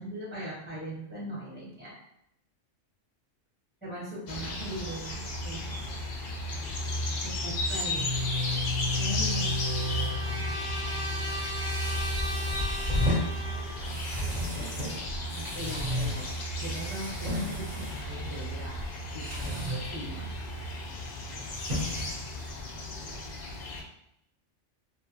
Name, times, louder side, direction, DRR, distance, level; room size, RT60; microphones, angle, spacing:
voice 1, 0.0-1.9 3.8-5.9 7.2-8.0 9.0-9.9 15.3-16.3 16.6-18.8 19.1-20.3, right 1 dB, 10° right, -8 dB, 0.9 m, -39 dB
sound 1, 4.3-23.8, left 1 dB, 65° left, 0.4 m, -34 dB
sound 2, 6.7-22.9, left 1 dB, 40° right, 1.0 m, -35 dB
Trumpet, 9.0-13.9, right 1 dB, 85° left, 1.0 m, -38 dB
voice 2, 12.3-12.9 13.4-14.5 21.7-21.9 22.7-23.0, right 3 dB, 70° right, -1 dB, 0.9 m, -54 dB
2.5 x 2.4 x 2.7 m, 0.78 s
omnidirectional pair, 1.3 m